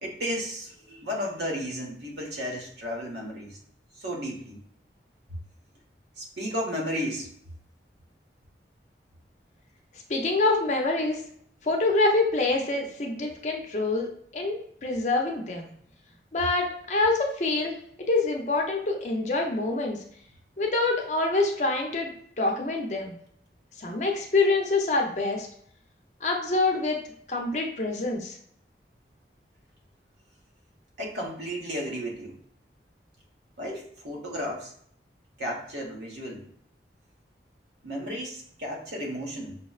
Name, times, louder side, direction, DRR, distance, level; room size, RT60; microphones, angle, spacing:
voice 1, 0.0-3.6 3.9-4.6 6.2-7.3 31.0-32.4 33.6-34.7 35.4-36.5 37.8-39.6, equal, 75° right, -1 dB, 1.0 m, -33 dB
voice 2, 10.1-11.2 11.6-15.7 16.3-17.7 18.1-20.0 20.6-23.2 23.8-25.5 26.2-27.0 27.3-28.4, left 3 dB, 40° left, 1 dB, 0.6 m, -26 dB
5.7 x 2.1 x 2.3 m, 0.63 s
head